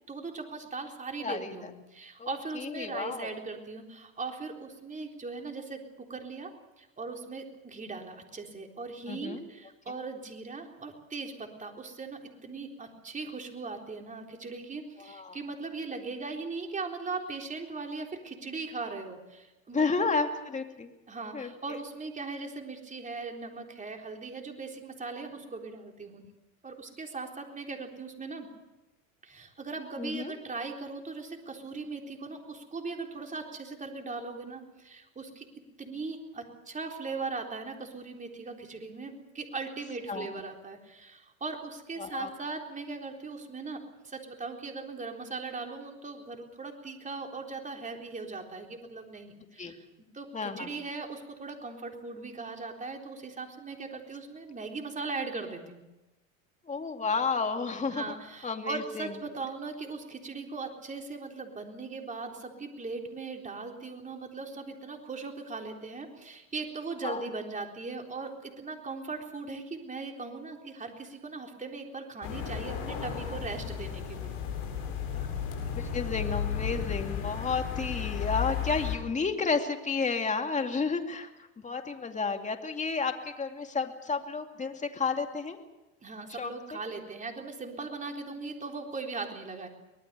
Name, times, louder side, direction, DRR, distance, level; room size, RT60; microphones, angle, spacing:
voice 1, 0.1-6.5 6.8-20.1 21.1-26.2 26.6-28.5 29.2-35.5 35.8-49.8 50.1-55.8 57.9-74.4 86.0-89.7, right 4 dB, 20° right, 2 dB, 3.9 m, -39 dB
voice 2, 1.2-1.7 2.2-3.3 9.1-9.4 9.9-10.0 15.0-15.4 19.7-20.9 21.3-21.5 30.0-30.3 40.1-40.4 42.0-42.3 49.6-49.7 50.3-50.7 56.6-58.1 58.4-59.2 67.0-67.2 75.1-75.3 75.6-85.6 86.3-86.8, left 4 dB, 15° left, 5 dB, 2.6 m, -32 dB
sound 1, 72.2-79.0, left 8 dB, 65° left, 8.0 m, -34 dB
24.5 x 19.5 x 6.9 m, 1.0 s
supercardioid pair, 105°, 41 cm